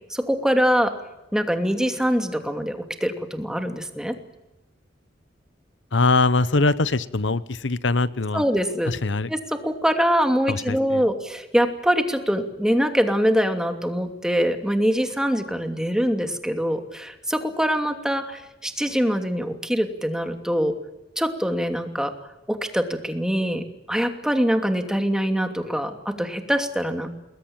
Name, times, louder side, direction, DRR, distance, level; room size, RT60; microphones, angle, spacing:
voice 1, 0.1-0.9 1.3-4.1 8.3-8.9 9.3-20.7 21.2-22.1 22.5-27.1, equal, 5° right, 6 dB, 2.7 m, -23 dB
voice 2, 5.9-8.4 8.9-9.3 10.5-11.0, left 3 dB, 90° left, 16 dB, 1.0 m, -22 dB
29.0 x 21.5 x 8.9 m, 0.95 s
head